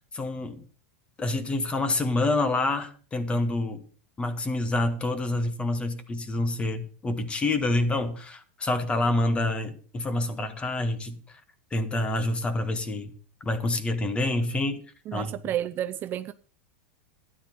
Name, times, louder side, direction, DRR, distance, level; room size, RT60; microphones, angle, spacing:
voice 1, 0.1-0.6 1.2-3.8 4.2-11.2 11.7-13.1 13.4-14.8 15.1-15.3, left 2 dB, 15° left, 1.6 m, -27 dB
voice 2, 15.1-16.3, right 11 dB, 30° right, 0.5 m, -31 dB
12.5 x 10.0 x 5.5 m
supercardioid pair, 140°, 7 cm